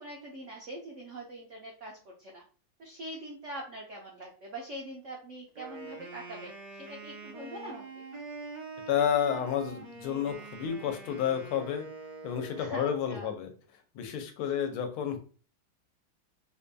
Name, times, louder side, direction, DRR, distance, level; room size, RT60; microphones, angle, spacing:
voice 1, 0.0-2.4 2.8-8.0 12.5-13.3 14.7-14.8, right 1 dB, 80° right, -1 dB, 0.6 m, -43 dB
Wind instrument woodwind instrument, 5.5-13.2, right 3 dB, 55° right, 1.2 m, -44 dB
voice 2, 8.9-11.9 12.2-13.5 13.9-15.2, left 8 dB, 85° left, 6 dB, 1.6 m, -30 dB
5.0 x 2.6 x 2.2 m, 0.37 s
omnidirectional pair, 2.3 m